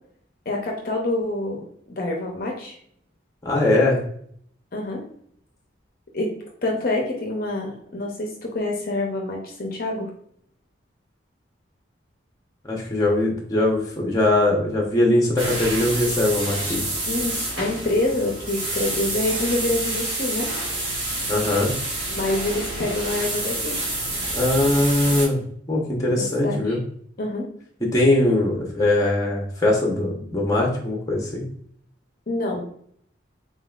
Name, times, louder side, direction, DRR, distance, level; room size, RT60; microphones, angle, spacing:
voice 1, 0.5-2.8 4.7-5.0 6.1-6.3 6.6-10.1 17.1-20.5 22.1-23.8 26.1-26.8 27.2-27.5 32.3-32.7, left 2 dB, 50° left, 0 dB, 0.6 m, -26 dB
voice 2, 3.4-4.0 12.6-16.9 21.3-21.7 24.3-25.4 25.7-26.8 27.9-31.5, left 1 dB, 20° left, -1 dB, 0.9 m, -21 dB
sound 1, 15.4-25.3, right 2 dB, 75° right, 1.4 m, -28 dB
3.8 x 3.8 x 2.4 m, 0.63 s
head